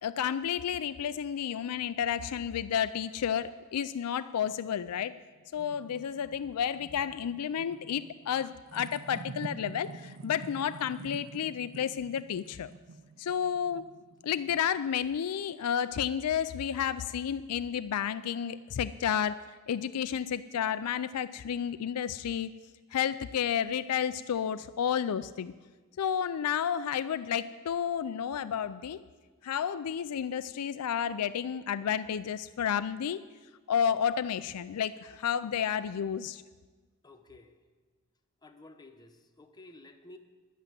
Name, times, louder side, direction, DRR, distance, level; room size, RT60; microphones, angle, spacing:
voice 1, 0.0-5.2 5.5-12.7 13.2-13.9 14.2-22.5 22.9-25.5 26.0-29.0 29.4-33.2 33.7-36.4, left 8 dB, 90° left, 14 dB, 0.4 m, -31 dB
sound 1, 5.0-15.1, right 3 dB, 55° right, 0.5 m, -48 dB
voice 2, 37.0-37.6 38.4-40.2, left 2 dB, 20° left, 6 dB, 0.9 m, -53 dB
11.0 x 8.3 x 9.3 m, 1.4 s
head